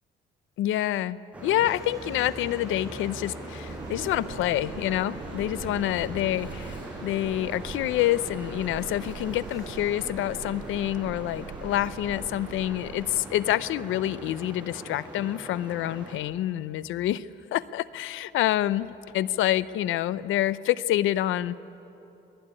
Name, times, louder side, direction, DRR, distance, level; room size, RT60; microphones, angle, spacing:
voice 1, 0.6-21.6, left 13 dB, 85° left, 17 dB, 0.7 m, -27 dB
sound 1, 1.3-16.2, right 1 dB, 5° right, 7.1 m, -41 dB
sound 2, 1.7-17.7 18.4-19.7, left 2 dB, 15° left, 4.1 m, -50 dB
sound 3, 3.7-13.2, right 7 dB, 65° right, 1.9 m, -43 dB
27.5 x 20.5 x 9.9 m, 2.9 s
cardioid pair, 90°, 20 cm